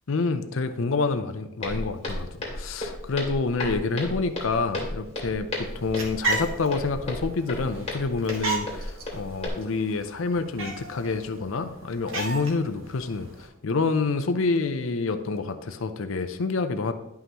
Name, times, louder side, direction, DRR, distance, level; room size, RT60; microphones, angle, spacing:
voice 1, 0.1-2.3 2.6-13.3 13.6-16.9, left 4 dB, 70° left, 9 dB, 0.5 m, -27 dB
Walk footsteps, 1.6-9.5, left 1 dB, 30° left, 2.5 m, -34 dB
sound 1, 5.7-13.5, right 3 dB, 70° right, 1.6 m, -35 dB
11.0 x 5.7 x 3.0 m, 0.89 s
head